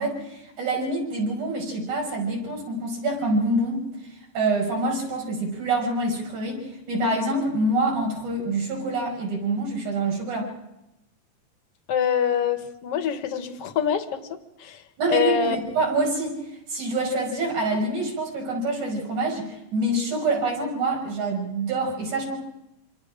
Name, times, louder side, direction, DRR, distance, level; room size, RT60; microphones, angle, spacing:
voice 1, 0.0-3.9 4.3-10.5 15.0-16.4 16.7-22.4, right 2 dB, 70° right, 0 dB, 7.2 m, -26 dB
voice 2, 11.9-14.8 15.1-15.6, left 7 dB, 55° left, 8 dB, 2.2 m, -25 dB
26.5 x 26.5 x 5.0 m, 0.87 s
omnidirectional pair, 3.5 m